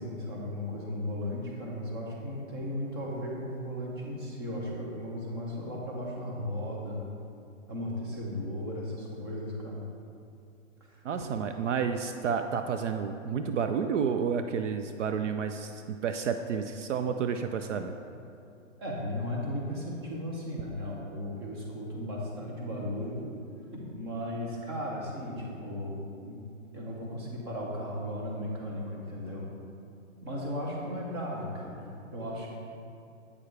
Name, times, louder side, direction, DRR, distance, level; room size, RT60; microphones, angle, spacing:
voice 1, 0.0-7.1 7.7-9.9 18.8-23.3 23.7-26.4 26.7-29.5 30.2-32.5, left 1 dB, 20° right, -3 dB, 0.7 m, -36 dB
voice 2, 11.0-17.9, right 6 dB, 65° right, 7 dB, 0.5 m, -30 dB
8.4 x 6.6 x 3.2 m, 2.5 s
hypercardioid pair, 170°, 40 cm